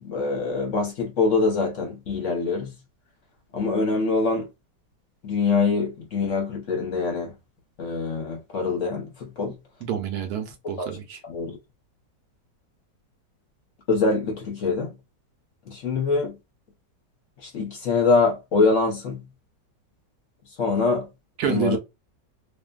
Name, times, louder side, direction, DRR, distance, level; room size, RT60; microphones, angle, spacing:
voice 1, 0.0-2.7 3.5-4.5 5.2-7.3 7.8-9.6 10.8-10.9 11.3-11.6 13.9-14.9 15.7-16.3 17.4-19.2 20.6-21.1 21.5-21.8, left 4 dB, 55° left, 0.9 m, -24 dB
voice 2, 9.8-11.2 21.4-21.8, right 9 dB, 70° right, 1.1 m, -28 dB
2.7 x 2.5 x 2.3 m
omnidirectional pair, 1.9 m